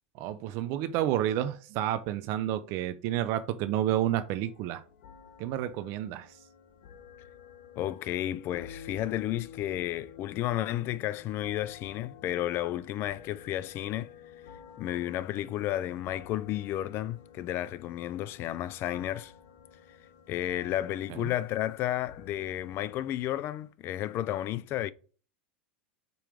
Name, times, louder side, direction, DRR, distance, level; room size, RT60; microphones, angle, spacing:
voice 1, 0.1-4.8 5.4-6.4 21.1-21.3, right 12 dB, 50° right, 0.6 m, -30 dB
sound 1, 4.0-23.0, left 8 dB, 75° left, 1.3 m, -51 dB
voice 2, 7.8-14.1 14.8-19.3 20.3-24.9, left 13 dB, 40° left, 0.5 m, -32 dB
5.3 x 4.5 x 5.0 m
supercardioid pair, 125°, 6 cm